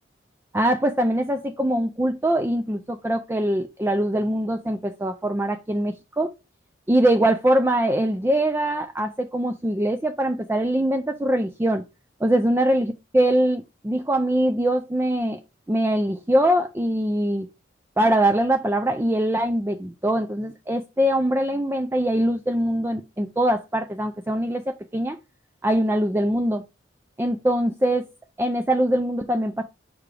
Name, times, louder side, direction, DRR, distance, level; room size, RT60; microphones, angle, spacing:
voice 1, 0.5-6.3 6.9-11.8 12.2-15.4 15.7-17.5 18.0-25.2 25.6-26.6 27.2-28.1 28.4-29.6, right 1 dB, 10° right, 6 dB, 0.4 m, -22 dB
7.0 x 4.7 x 3.2 m, 0.25 s
head